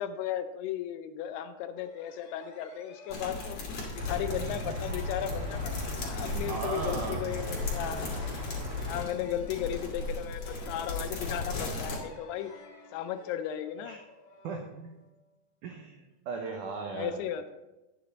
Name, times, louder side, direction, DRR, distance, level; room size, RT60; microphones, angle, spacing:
voice 1, 0.0-3.6 3.9-8.4 8.8-12.5 12.9-14.0 16.9-17.6, left 10 dB, 80° left, 10 dB, 2.5 m, -35 dB
sound 1, 1.7-15.2, left 3 dB, 65° left, 3.1 m, -53 dB
sound 2, 3.1-12.0, left 3 dB, 45° left, 2.7 m, -37 dB
sound 3, 4.0-9.0, left 2 dB, 40° right, 2.2 m, -37 dB
voice 2, 6.5-7.3 13.8-14.0 14.4-15.0 15.6-17.2, right 4 dB, 85° right, 2 dB, 1.7 m, -37 dB
10.5 x 7.7 x 4.0 m, 1.0 s
omnidirectional pair, 4.8 m